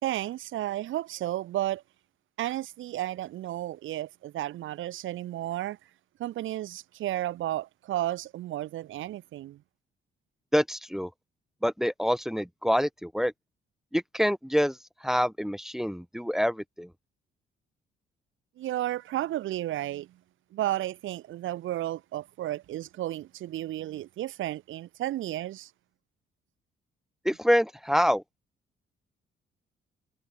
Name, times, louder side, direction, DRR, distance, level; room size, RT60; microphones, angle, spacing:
voice 1, 0.0-1.8 2.4-5.8 6.2-9.6 18.6-20.1 20.5-25.7, right 14 dB, 80° right, 1.7 m, -33 dB
voice 2, 10.5-11.1 11.6-13.3 13.9-14.8 15.0-16.9 27.2-28.2, equal, ahead, 0.6 m, -26 dB
cardioid pair, 90°, 20 cm